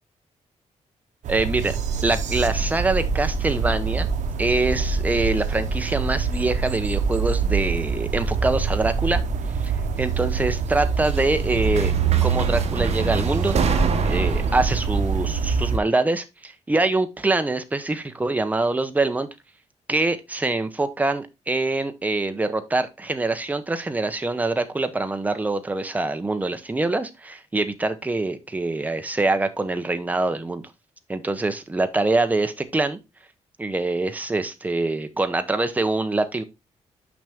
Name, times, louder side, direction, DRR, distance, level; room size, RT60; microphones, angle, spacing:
sound 1, 1.2-15.8, right 5 dB, 85° right, 0.8 m, -25 dB
voice 1, 1.3-1.7 2.0-4.1 4.4-9.2 9.6-9.7 10.0-11.9 12.2-13.6 14.0-19.3 19.9-30.6 31.1-33.0 33.6-36.4, right 2 dB, 15° right, 0.7 m, -24 dB
sound 2, 4.9-6.9 7.2-7.9 9.0-9.1 10.7-14.8, right 4 dB, 60° right, 1.0 m, -28 dB
6.1 x 5.6 x 3.5 m
wide cardioid pair, 160°, 12 cm